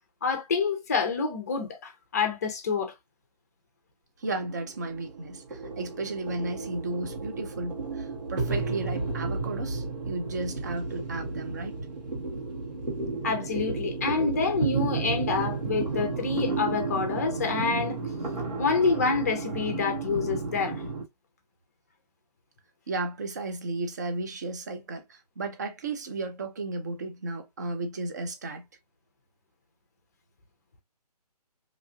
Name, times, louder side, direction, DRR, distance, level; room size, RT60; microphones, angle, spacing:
voice 1, 0.2-2.9 13.2-18.0 18.6-20.8, left 5 dB, 25° left, 0.5 m, -27 dB
voice 2, 4.2-11.7 22.9-28.6, right 2 dB, 25° right, 0.4 m, -34 dB
sound 1, 4.2-21.0, right 4 dB, 90° right, 1.4 m, -32 dB
2.8 x 2.4 x 2.5 m
figure-of-eight pair, 155°, 20 cm